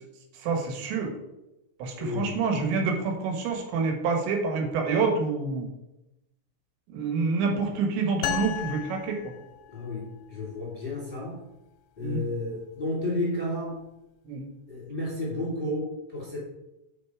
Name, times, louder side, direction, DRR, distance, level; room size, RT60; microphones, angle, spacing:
voice 1, 0.4-1.1 1.8-5.7 6.9-9.3 12.0-12.2 14.3-14.4, right 4 dB, 75° right, 3 dB, 3.5 m, -27 dB
voice 2, 2.0-2.4 9.7-11.4 12.0-13.8 14.7-16.4, left 2 dB, 20° left, -6 dB, 1.4 m, -32 dB
sound 1, 8.2-10.0, left 12 dB, 90° left, 3.0 m, -34 dB
6.7 x 6.4 x 4.7 m, 0.92 s
omnidirectional pair, 5.4 m